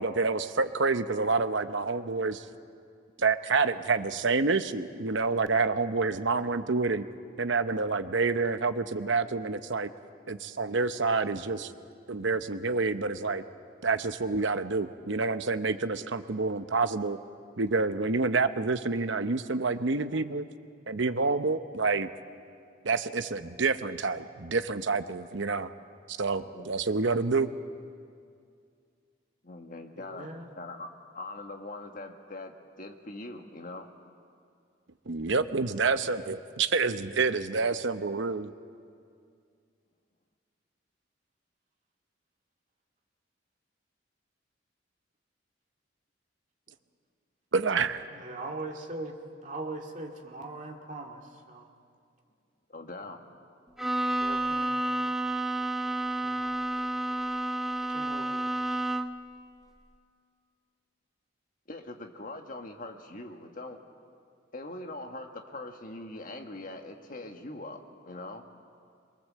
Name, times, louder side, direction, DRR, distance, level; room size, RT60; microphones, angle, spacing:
voice 1, 0.0-2.5 3.2-7.0 7.4-9.9 10.3-11.7 12.1-13.4 13.8-17.2 17.6-20.5 20.9-22.1 22.8-25.7 26.1-27.5 35.1-38.5 47.5-48.0, right 4 dB, 70° right, 11 dB, 0.9 m, -28 dB
voice 2, 26.4-26.7 29.4-30.3 30.6-30.9 31.1-33.9 52.7-53.2 61.7-63.8 64.5-68.4, left 2 dB, 45° left, 4 dB, 1.6 m, -42 dB
voice 3, 30.0-30.5 48.1-49.2 49.4-51.7 53.8-54.7 56.2-56.5 57.9-58.8, right 2 dB, 40° right, 1 dB, 2.2 m, -41 dB
Bowed string instrument, 53.8-59.3, right 1 dB, ahead, 0.5 m, -30 dB
23.0 x 22.5 x 7.6 m, 2.3 s
head